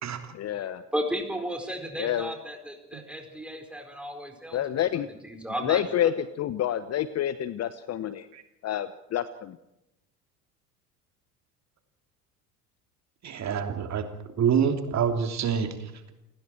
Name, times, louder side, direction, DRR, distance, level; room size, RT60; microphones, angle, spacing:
voice 1, 0.3-0.8 2.0-2.3 4.5-5.1 5.6-8.3 8.6-9.6, left 11 dB, 35° left, 15 dB, 1.0 m, -28 dB
voice 2, 0.9-6.1, equal, ahead, 4 dB, 4.5 m, -34 dB
voice 3, 13.2-14.1 14.4-16.1, right 7 dB, 35° right, 6 dB, 3.2 m, -26 dB
29.5 x 19.5 x 4.6 m, 0.85 s
figure-of-eight pair, 70°, 47 cm